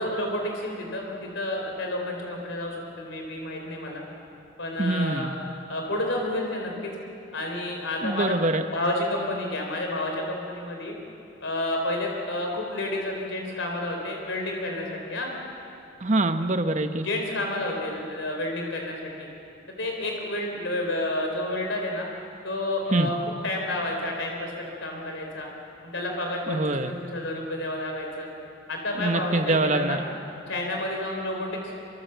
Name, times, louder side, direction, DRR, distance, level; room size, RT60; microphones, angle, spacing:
voice 1, 0.0-4.0 4.6-5.3 5.7-6.9 7.3-8.4 8.7-10.9 11.4-15.3 17.0-19.3 19.8-22.1 22.4-23.2 23.4-25.5 25.9-28.3 28.7-30.0 30.5-31.7, left 1 dB, 70° left, 1 dB, 4.0 m, -30 dB
voice 2, 4.8-5.3 8.0-8.6 16.0-17.1 22.9-23.1 26.5-26.9 29.0-30.0, right 2 dB, 35° right, 8 dB, 1.2 m, -24 dB
26.0 x 24.5 x 8.1 m, 2.7 s
head